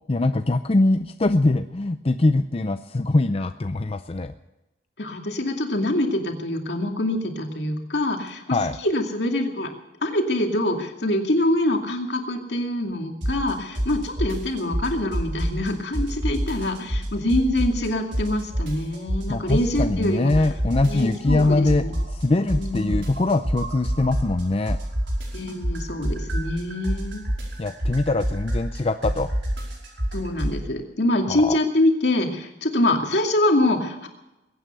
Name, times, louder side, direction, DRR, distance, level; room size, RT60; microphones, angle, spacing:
voice 1, 0.1-4.3 8.5-8.8 19.3-21.8 22.1-24.8 27.6-29.3 31.3-31.6, left 2 dB, 35° left, 8 dB, 0.5 m, -22 dB
voice 2, 5.0-9.7 10.0-20.3 20.8-21.9 22.6-23.1 25.3-27.2 30.1-34.1, left 1 dB, 65° left, 3 dB, 2.4 m, -25 dB
sound 1, 13.2-13.5 13.8-15.7 15.9-17.9 18.1-20.0 20.3-24.4 24.7-30.6, equal, 85° right, 5.2 m, -26 dB
22.0 x 9.5 x 6.8 m, 0.98 s
head